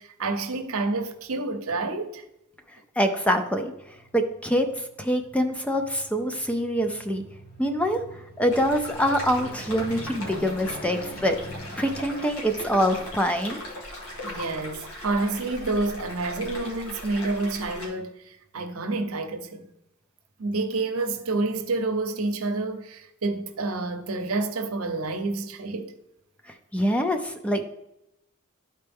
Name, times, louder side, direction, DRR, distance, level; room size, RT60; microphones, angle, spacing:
voice 1, 0.0-2.2 14.2-19.6 20.4-25.9, right 3 dB, 80° right, 0.8 m, -29 dB
voice 2, 3.0-3.7 4.1-7.3 7.6-11.4 11.8-13.6 26.7-27.7, equal, 5° left, 0.5 m, -25 dB
Aircraft, 3.5-16.0 16.4-16.5, equal, 45° left, 1.2 m, -44 dB
sound 1, 8.5-17.9, left 1 dB, 80° left, 1.9 m, -39 dB
11.5 x 4.4 x 3.5 m
head